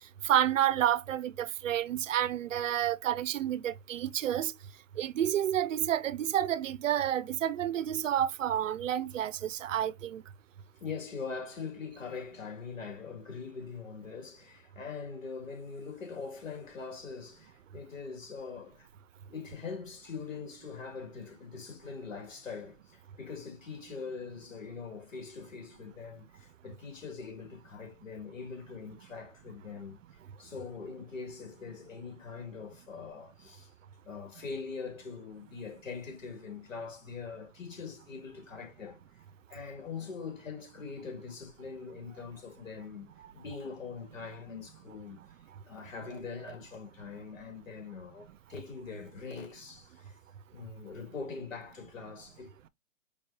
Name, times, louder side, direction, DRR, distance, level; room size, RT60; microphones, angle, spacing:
voice 1, 0.2-4.5 5.0-10.2, right 11 dB, 75° right, 0.6 m, -29 dB
voice 2, 10.8-18.9 19.3-30.0 30.4-33.7 34.0-39.0 39.5-45.3 45.7-50.1 50.5-52.7, left 5 dB, 80° left, 2.8 m, -42 dB
5.3 x 3.2 x 2.7 m
hypercardioid pair, 155°, 39 cm